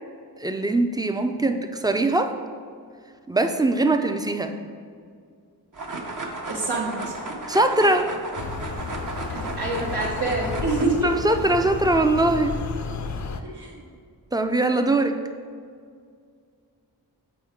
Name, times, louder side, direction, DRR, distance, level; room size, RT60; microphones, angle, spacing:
voice 1, 0.4-2.4 3.3-4.5 7.5-8.1 11.0-12.6 14.3-15.2, right 2 dB, 10° right, 7 dB, 0.4 m, -21 dB
sound 1, 5.7-10.9, right 2 dB, 50° right, 0.9 m, -34 dB
voice 2, 6.5-7.0 9.3-11.1 13.5-13.8, right 3 dB, 80° right, -7 dB, 1.0 m, -26 dB
sound 2, 8.4-13.4, left 5 dB, 45° left, 0.5 m, -32 dB
7.3 x 4.6 x 3.6 m, 2.1 s
wide cardioid pair, 55°, 40 cm